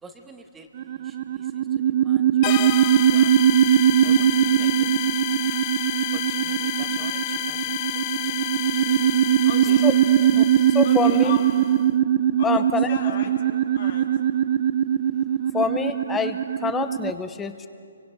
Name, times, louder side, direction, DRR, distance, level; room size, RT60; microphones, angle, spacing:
voice 1, 0.0-4.9 6.1-7.9 8.1-8.5 8.8-9.5, right 3 dB, 10° right, 6 dB, 1.4 m, -50 dB
sound 1, 0.8-17.1, right 10 dB, 45° right, 0.5 m, -21 dB
sound 2, 2.4-11.8, left 17 dB, 30° left, 0.4 m, -30 dB
voice 2, 9.4-9.8 10.8-11.7 12.4-13.3 13.7-14.1, left 6 dB, 55° left, 1 dB, 2.8 m, -35 dB
voice 3, 10.3-11.4 12.4-13.1 15.5-17.7, left 6 dB, 10° left, 10 dB, 0.9 m, -26 dB
29.5 x 24.0 x 3.9 m, 2.3 s
hypercardioid pair, 140°, 0 cm